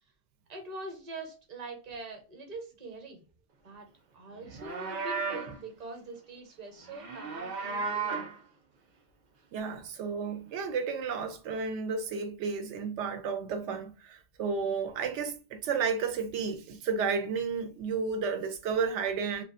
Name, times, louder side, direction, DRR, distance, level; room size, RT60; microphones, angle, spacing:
voice 1, 0.5-3.2 3.6-3.9 4.1-8.3, right 3 dB, 40° right, 0.8 m, -43 dB
Livestock farm animals working animals, 4.4-5.6 6.9-8.4, right 4 dB, 60° right, 0.5 m, -34 dB
voice 2, 9.5-19.4, right 5 dB, 85° right, 0.9 m, -32 dB
2.5 x 2.3 x 2.3 m
omnidirectional pair, 1.2 m